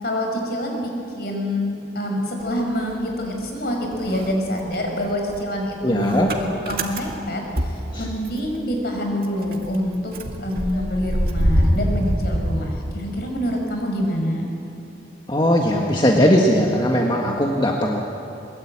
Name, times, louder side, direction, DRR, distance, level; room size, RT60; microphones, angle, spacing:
voice 1, 0.0-10.1 10.4-14.5, equal, 55° left, 2 dB, 5.2 m, -26 dB
Motor vehicle (road) / Engine starting, 2.4-3.6 3.9-8.6 8.9-9.0 9.2-13.3, equal, 55° right, 2.2 m, -25 dB
voice 2, 5.8-6.3 15.3-18.0, equal, 25° left, -1 dB, 1.7 m, -19 dB
22.0 x 22.0 x 8.9 m, 2.8 s
head